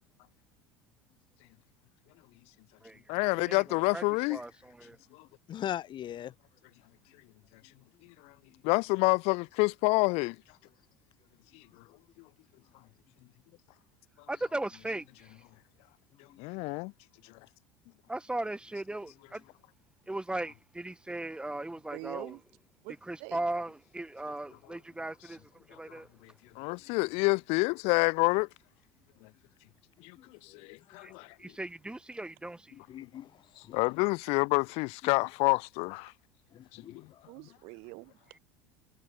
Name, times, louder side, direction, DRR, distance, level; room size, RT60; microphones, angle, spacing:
voice 1, 3.1-4.4 8.2-8.3 8.6-10.4 16.4-16.9 26.5-28.5 30.0-30.2 30.4-31.3 33.7-36.1 36.7-36.8, left 27 dB, 60° left, 3.0 m, -28 dB
voice 2, 4.3-5.0 14.3-15.3 18.1-19.4 20.1-22.3 23.1-26.1 31.0-31.1 31.4-32.8, right 2 dB, 10° right, 5.8 m, -37 dB
voice 3, 5.5-6.3 16.3-16.4 30.2-30.3 32.7-33.3 33.7-33.8 36.5-37.2, left 11 dB, 40° left, 1.6 m, -39 dB
voice 4, 21.9-22.4 22.8-23.4 37.3-38.3, right 28 dB, 60° right, 6.3 m, -44 dB
hypercardioid pair, 75°, 12 cm